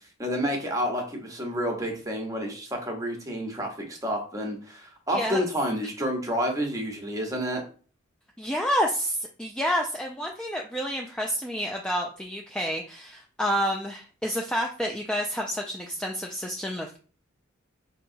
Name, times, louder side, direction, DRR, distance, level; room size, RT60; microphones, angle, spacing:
voice 1, 0.2-7.6, equal, 15° right, 2 dB, 0.9 m, -29 dB
voice 2, 5.1-5.4 8.4-17.0, equal, 5° left, 0 dB, 0.3 m, -29 dB
5.3 x 2.8 x 2.6 m, 0.40 s
head